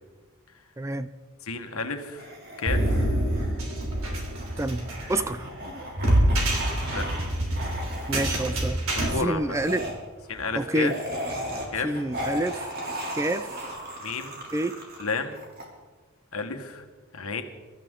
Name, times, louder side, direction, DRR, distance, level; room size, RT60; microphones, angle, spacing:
voice 1, 0.8-1.1 4.6-5.5 8.1-8.8 9.2-9.8 10.5-10.9 11.8-12.7 13.1-13.5 14.5-14.8, right 1 dB, 15° right, 13 dB, 0.4 m, -28 dB
voice 2, 1.4-3.1 6.9-7.1 9.1-9.4 10.3-10.9 11.7-12.0 14.0-14.4 15.0-15.4 16.3-16.8 17.1-17.4, left 4 dB, 80° left, 6 dB, 1.5 m, -31 dB
sound 1, 2.2-7.3 7.5-8.5 9.5-15.6, equal, 45° right, 3.0 m, -36 dB
sound 2, 2.7-9.1, right 1 dB, 75° right, 3.2 m, -26 dB
24.0 x 13.0 x 3.8 m, 1.4 s
head